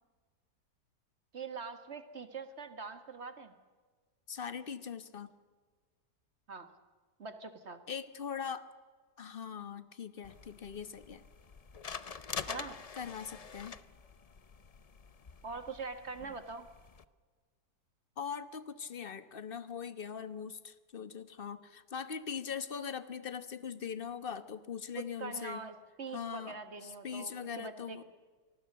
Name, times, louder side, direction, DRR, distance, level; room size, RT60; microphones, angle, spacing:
voice 1, 1.3-3.5 6.5-6.7 7.2-7.8 12.5-12.8 15.4-16.7 24.9-27.3 27.6-28.0, right 4 dB, 45° right, 9 dB, 1.7 m, -43 dB
voice 2, 4.3-5.3 7.9-8.7 9.2-11.2 12.9-13.8 18.2-25.6 26.1-28.0, left 7 dB, 40° left, 12 dB, 1.1 m, -41 dB
sound 1, 10.2-17.0, left 6 dB, 60° left, 0.4 m, -46 dB
26.5 x 19.5 x 6.6 m, 1.5 s
omnidirectional pair, 1.8 m